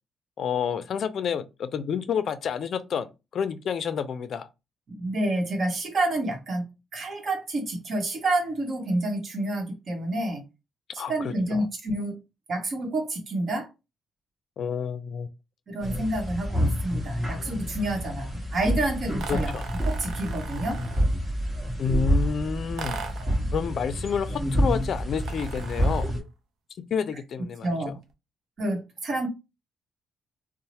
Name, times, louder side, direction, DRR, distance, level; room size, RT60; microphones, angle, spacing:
voice 1, 0.4-3.1 3.3-4.5 11.0-11.6 14.6-15.3 19.3-19.7 21.8-23.0 23.5-26.1 26.8-27.9, left 7 dB, 60° left, 0.3 m, -29 dB
voice 2, 4.9-6.7 6.9-10.4 10.9-12.2 12.5-13.7 15.7-19.5 19.8-20.8 23.2-23.6 27.6-28.0 28.6-29.3, right 1 dB, 50° right, 1.0 m, -29 dB
sound 1, 15.8-26.2, equal, 25° right, 1.1 m, -28 dB
sound 2, 19.2-21.2 22.8-23.4 25.2-26.2, right 5 dB, 70° right, 0.5 m, -39 dB
2.7 x 2.0 x 3.0 m
cardioid pair, 90°, 0 cm